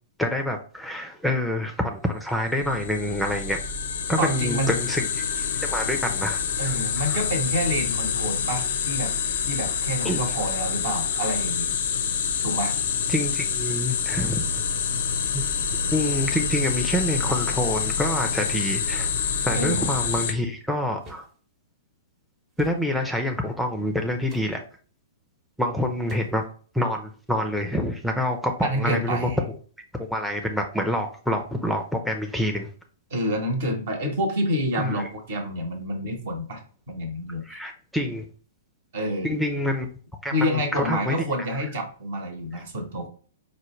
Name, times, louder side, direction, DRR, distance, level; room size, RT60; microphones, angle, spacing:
voice 1, 0.2-3.6 4.1-7.2 10.0-10.3 13.1-14.5 15.3-15.4 15.9-19.1 19.4-21.3 22.6-24.6 25.6-26.4 26.7-29.5 30.1-32.7 34.8-35.1 37.4-38.3 39.2-39.9 40.2-41.2, left 1 dB, ahead, 3 dB, 0.4 m, -27 dB
sound 1, 2.6-20.3, left 7 dB, 60° left, 0.4 m, -27 dB
sound 2, 2.6-20.2, right 3 dB, 85° right, 0.7 m, -38 dB
voice 2, 4.2-4.8 6.6-9.1 9.4-11.8 12.4-12.7 19.5-19.9 28.6-29.4 33.1-36.6 36.9-37.6 38.9-39.3 40.3-43.1, equal, 60° right, 4 dB, 1.0 m, -28 dB
sound 3, 21.0-21.3 22.6-22.8 24.2-24.6 26.1-26.5, right 1 dB, 30° right, 0.9 m, -45 dB
4.7 x 2.2 x 3.1 m, 0.43 s
figure-of-eight pair, 110°, 0 cm